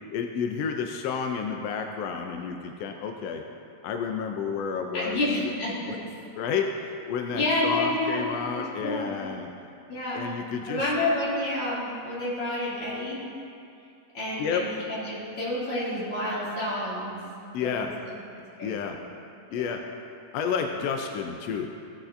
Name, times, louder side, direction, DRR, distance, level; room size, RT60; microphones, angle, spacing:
voice 1, 0.1-3.4 3.8-5.2 5.9-6.0 6.4-6.6 7.1-9.5 10.1-10.9 14.4-14.6 17.5-17.9 18.6-19.0 19.5-19.8 20.3-21.7, left 6 dB, 80° left, 4 dB, 1.4 m, -30 dB
voice 2, 4.9-5.9 7.3-8.3 8.5-9.2 9.9-10.2 10.7-13.2 14.1-17.1 17.6-17.9 18.6-19.0 19.5-19.6, left 1 dB, 50° left, -9 dB, 3.5 m, -29 dB
15.5 x 8.4 x 2.6 m, 2.5 s
omnidirectional pair, 3.4 m